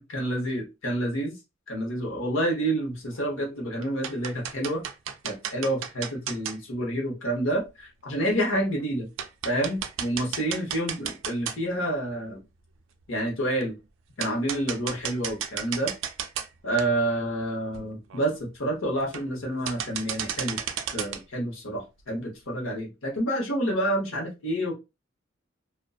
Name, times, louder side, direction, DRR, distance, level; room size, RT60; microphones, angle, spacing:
voice 1, 0.0-1.4 1.7-4.8 5.2-9.1 9.4-12.4 13.1-13.8 14.2-15.9 16.6-20.6 20.9-24.7, right 1 dB, 75° left, 0 dB, 0.9 m, -28 dB
sound 1, 3.1-3.5 3.8-6.6 7.7-7.8 8.3-8.4 8.8-8.9 9.2-11.9 12.3-12.4 13.6-13.7 14.2-16.5 16.8-16.9 17.4-17.5 17.7-17.8 18.1-18.4 19.0-19.4 19.7-21.2, right 8 dB, 65° right, 0.4 m, -34 dB
2.5 x 2.2 x 2.3 m, 0.25 s
head